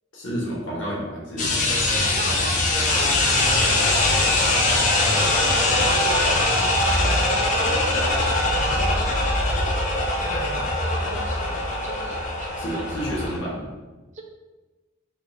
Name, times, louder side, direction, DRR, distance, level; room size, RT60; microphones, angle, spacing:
voice 1, 0.1-1.6 12.6-13.7, equal, 70° left, -5 dB, 1.2 m, -30 dB
sound 1, 1.4-13.4, left 2 dB, 40° left, 0.5 m, -22 dB
voice 2, 1.9-2.6 2.9-6.4 7.0-10.0 10.5-13.1 14.1-14.2, right 2 dB, 35° right, 2 dB, 0.5 m, -38 dB
4.2 x 2.4 x 3.2 m, 1.2 s
head